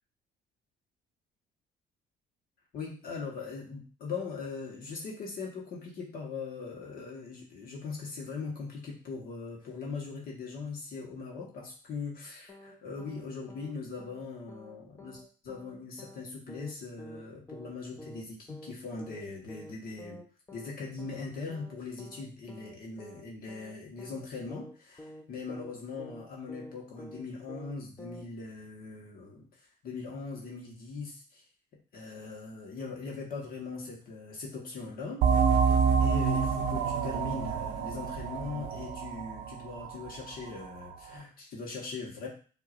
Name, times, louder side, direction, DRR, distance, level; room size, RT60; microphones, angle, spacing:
voice 1, 2.7-20.2 20.5-31.4 31.9-35.3 36.0-42.3, left 4 dB, 60° left, -2 dB, 1.5 m, -40 dB
sound 1, 12.5-12.7 13.0-13.2 13.5-13.7 14.0-14.2 14.5-14.7 15.0-15.2 15.5-15.7 16.0-16.2 16.5-16.7 17.0-17.2 17.5-17.7 18.0-18.2 18.5-18.7 19.0-19.2 19.5-19.7 20.0-20.2 20.5-20.7 21.0-21.2 21.5-21.7 22.0-22.2 22.5-22.7 23.0-23.2 23.5-23.7 24.0-24.2 24.5-24.7 25.0-25.2 25.5-25.7 26.0-26.2 26.5-26.7 27.0-27.2 27.5-27.7 28.0-28.2, left 1 dB, 15° left, 0.6 m, -48 dB
sound 2, 35.2-40.5, right 6 dB, 90° right, 0.6 m, -27 dB
5.9 x 2.9 x 2.6 m, 0.39 s
cardioid pair, 110°, 17 cm